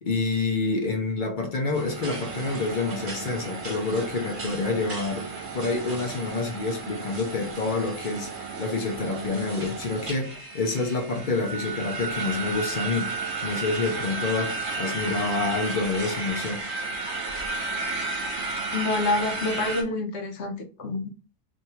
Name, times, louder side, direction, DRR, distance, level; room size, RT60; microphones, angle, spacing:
voice 1, 0.0-5.3 5.5-13.1 13.4-16.6, left 3 dB, 45° left, 0.9 m, -28 dB
sound 1, 1.7-19.8, right 3 dB, 45° right, 1.0 m, -33 dB
voice 2, 18.7-20.5 20.8-21.1, left 2 dB, 65° left, 0.9 m, -27 dB
2.8 x 2.5 x 4.3 m
omnidirectional pair, 1.3 m